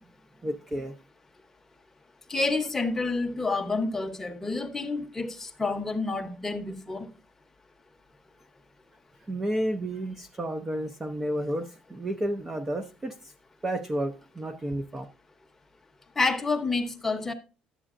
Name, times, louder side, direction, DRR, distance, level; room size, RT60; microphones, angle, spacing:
voice 1, 0.4-0.9 9.3-13.2 13.6-15.1, right 1 dB, 15° right, 0.5 m, -31 dB
voice 2, 2.3-7.1 16.2-17.3, left 3 dB, 10° left, 0.8 m, -29 dB
11.0 x 7.8 x 2.4 m
cardioid pair, 170°, 3 cm